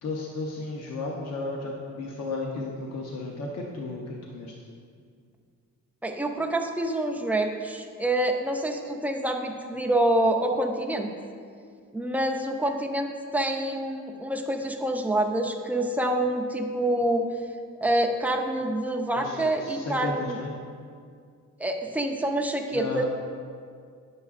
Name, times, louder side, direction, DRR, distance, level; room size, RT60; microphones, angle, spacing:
voice 1, 0.0-4.5 19.1-20.5 22.7-23.0, left 2 dB, 50° left, -1 dB, 0.7 m, -34 dB
voice 2, 6.0-11.1 11.9-17.3 17.8-20.4 21.6-23.0, right 1 dB, 5° right, 2 dB, 0.3 m, -27 dB
9.5 x 6.9 x 2.4 m, 2.2 s
wide cardioid pair, 165°, 33 cm